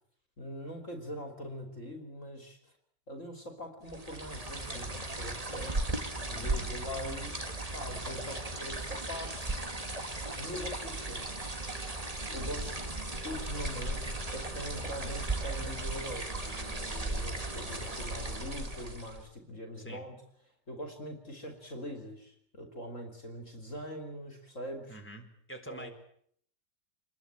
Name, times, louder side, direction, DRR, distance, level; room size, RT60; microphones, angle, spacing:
voice 1, 0.4-2.7 3.1-5.8 6.3-7.5 7.7-9.5 10.4-11.5 12.3-12.9 13.2-20.2 20.7-25.0 25.7-25.9, equal, 45° left, 5 dB, 3.5 m, -42 dB
sound 1, 3.9-19.3, right 2 dB, 20° right, 2.5 m, -36 dB
voice 2, 6.3-6.8 19.8-20.0 24.9-25.9, right 1 dB, 5° left, 3 dB, 4.4 m, -46 dB
27.5 x 22.0 x 8.9 m, 0.67 s
omnidirectional pair, 1.8 m